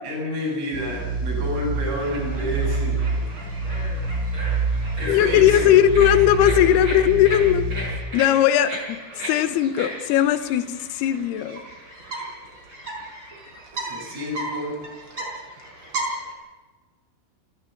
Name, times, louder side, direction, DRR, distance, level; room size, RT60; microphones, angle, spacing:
voice 1, 0.0-3.0 4.6-5.8 13.8-14.8, left 1 dB, 75° right, -3 dB, 10.5 m, -30 dB
sound 1, 0.7-8.0, right 3 dB, 50° right, 7.2 m, -27 dB
sound 2, 1.9-16.3, right 1 dB, 25° right, 5.1 m, -35 dB
voice 2, 5.1-7.7 8.1-11.6, left 11 dB, 80° left, 9 dB, 2.4 m, -18 dB
29.0 x 13.0 x 7.3 m, 1.3 s
omnidirectional pair, 6.0 m